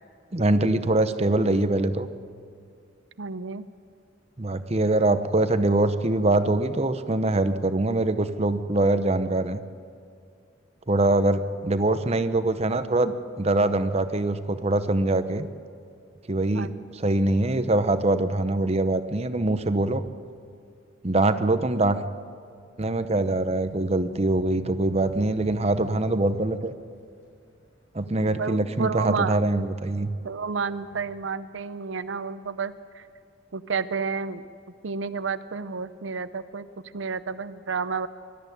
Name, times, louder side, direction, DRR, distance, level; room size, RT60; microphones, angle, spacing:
voice 1, 0.3-2.1 4.4-9.6 10.9-15.5 16.3-20.0 21.0-22.0 22.8-26.7 27.9-30.1, right 2 dB, 35° right, 11 dB, 0.9 m, -23 dB
voice 2, 3.2-3.7 16.5-16.7 28.4-29.4 30.2-33.1 33.5-34.5 34.8-36.7 36.9-38.1, right 5 dB, 85° right, 13 dB, 0.7 m, -30 dB
sound 1, 23.2-28.7 29.3-31.1, left 2 dB, 75° left, 5.7 m, -47 dB
21.5 x 13.0 x 10.0 m, 2.4 s
head